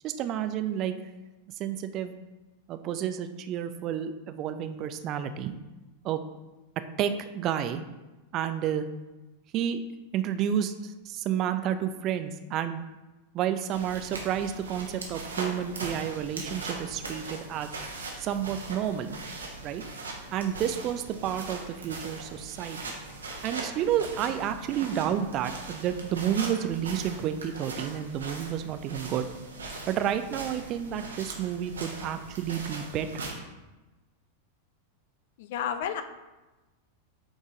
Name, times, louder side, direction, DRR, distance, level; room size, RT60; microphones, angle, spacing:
voice 1, 0.0-0.9 1.6-2.1 2.7-5.6 6.0-6.2 7.0-7.8 8.3-8.9 9.5-9.8 10.1-12.8 13.3-17.7 18.2-19.1 19.6-19.8 20.3-22.9 23.4-29.3 29.9-33.3, right 9 dB, 35° right, 10 dB, 0.5 m, -30 dB
sound 1, 13.7-33.3, right 3 dB, 70° right, 1.1 m, -40 dB
voice 2, 35.4-36.0, left 8 dB, 55° left, 9 dB, 0.5 m, -31 dB
8.2 x 4.0 x 3.7 m, 1.1 s
figure-of-eight pair, 90°, 0 cm